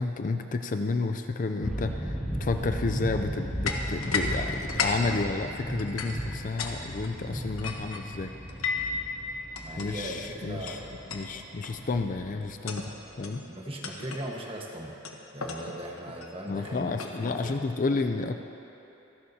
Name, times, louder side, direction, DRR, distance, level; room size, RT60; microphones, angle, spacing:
voice 1, 0.0-8.3 9.8-10.8 11.1-13.4 16.5-18.4, left 3 dB, 40° left, 7 dB, 0.4 m, -31 dB
sound 1, 1.6-13.1, equal, 5° right, 2.3 m, -36 dB
sound 2, 3.7-4.3 4.6-6.8 7.0-9.0 9.6-9.9 10.7-10.8 11.1-11.3 11.6-11.9 12.5-12.9 13.2-13.4 13.8-14.3 15.1-17.5, left 4 dB, 85° left, 1.2 m, -34 dB
voice 2, 9.6-11.0 13.4-15.0 15.3-17.6, right 1 dB, 25° right, -1 dB, 1.3 m, -39 dB
27.0 x 11.0 x 2.8 m, 3.0 s
head